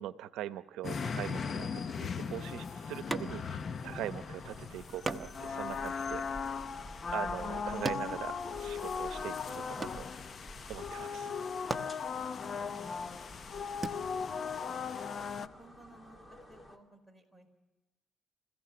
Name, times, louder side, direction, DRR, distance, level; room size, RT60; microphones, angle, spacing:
voice 1, 0.0-6.2 7.1-10.0 10.7-11.3, right 13 dB, 90° right, 12 dB, 0.7 m, -42 dB
sound 1, 0.8-15.5, left 5 dB, 45° left, 0.8 m, -38 dB
sound 2, 3.1-3.7 4.0-4.1 5.1-9.0 9.3-10.5 11.2-11.3 11.6-13.9, right 2 dB, 15° right, 1.1 m, -41 dB
sound 3, 3.8-16.8, equal, 20° left, 2.4 m, -52 dB
voice 2, 11.9-13.1 13.4-17.5, right 2 dB, 5° left, 7 dB, 4.7 m, -60 dB
28.5 x 16.0 x 6.0 m, 1.1 s
cardioid pair, 90°, 0 cm